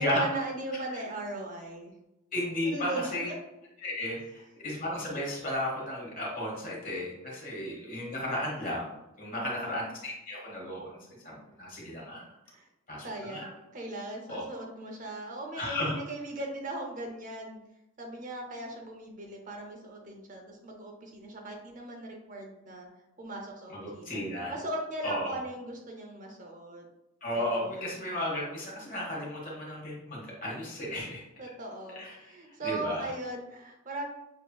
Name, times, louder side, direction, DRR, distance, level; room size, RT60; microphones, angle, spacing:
voice 1, 0.0-1.9 2.6-3.4 9.4-9.8 12.5-12.7 13.0-17.6 18.0-22.9 23.2-24.2 24.5-26.8 27.4-27.9 31.4-34.1, right 2 dB, 40° right, 1 dB, 0.6 m, -38 dB
voice 2, 2.3-3.3 3.8-8.9 9.2-11.0 11.2-12.2 12.9-13.5 14.3-14.4 15.5-15.9 23.7-24.5 25.0-25.3 27.2-31.2 31.9-32.3 32.6-33.1, left 1 dB, 40° left, -3 dB, 1.5 m, -34 dB
6.4 x 2.9 x 2.3 m, 0.92 s
head